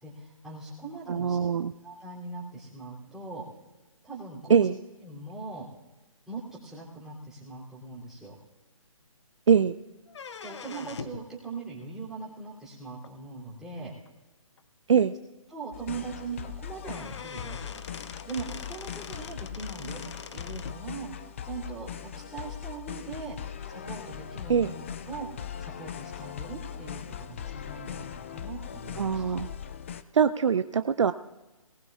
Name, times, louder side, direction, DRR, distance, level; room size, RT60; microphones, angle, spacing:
voice 1, 0.0-1.4 1.8-3.4 4.0-4.7 5.0-5.7 6.3-8.3 10.4-13.9 15.5-17.6 18.2-20.0 20.3-21.9 22.1-23.4 23.6-29.2, right 4 dB, 5° right, -7 dB, 2.9 m, -40 dB
voice 2, 1.1-1.7 4.5-4.8 9.5-9.7 14.9-15.2 24.5-24.7 29.0-29.5 30.1-31.1, right 7 dB, 60° right, 11 dB, 0.5 m, -23 dB
sound 1, 10.1-11.3 13.0-13.1 14.1-14.2 14.6-14.7 15.0-15.1 16.4-16.5 16.8-20.8, left 6 dB, 55° left, 0.8 m, -43 dB
sound 2, 15.7-30.0, left 9 dB, 25° left, 0.4 m, -40 dB
20.5 x 19.0 x 2.4 m, 1.1 s
figure-of-eight pair, 145°, 17 cm